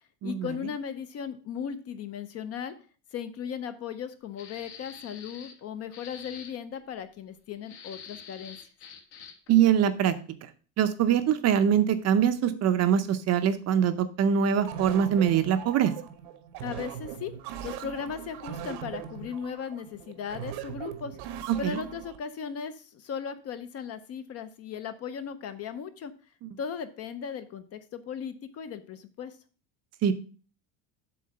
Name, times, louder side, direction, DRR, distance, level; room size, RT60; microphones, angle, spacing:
voice 1, 0.2-2.7 3.1-8.6 16.6-17.3 17.6-21.2 21.6-26.1 26.6-29.4, left 7 dB, 35° left, 11 dB, 0.5 m, -37 dB
sound 1, 4.4-5.6 5.9-6.5 7.6-9.5, left 6 dB, 60° left, 1.6 m, -46 dB
voice 2, 9.5-10.1 10.8-15.9 21.6-21.8 26.4-26.5 30.0-30.1, right 9 dB, 35° right, 10 dB, 0.6 m, -23 dB
sound 2, 14.7-22.2, right 9 dB, 85° right, 1.2 m, -40 dB
7.8 x 3.8 x 6.4 m, 0.40 s
cardioid pair, 155°, 45 cm